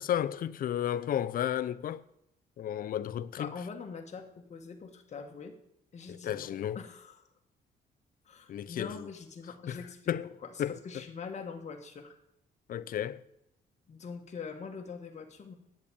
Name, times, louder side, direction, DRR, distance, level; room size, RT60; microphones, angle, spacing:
voice 1, 0.0-2.0 2.6-3.5 6.1-6.8 8.5-8.9 9.7-9.8 10.1-10.3 10.6-10.8 12.7-13.2, left 10 dB, 60° left, 0.6 m, -32 dB
voice 2, 3.4-5.6 5.9-7.3 8.3-10.1 10.4-12.2 13.9-15.5, left 5 dB, 45° left, 1.7 m, -43 dB
8.9 x 8.2 x 8.6 m
cardioid pair, 120°, 17 cm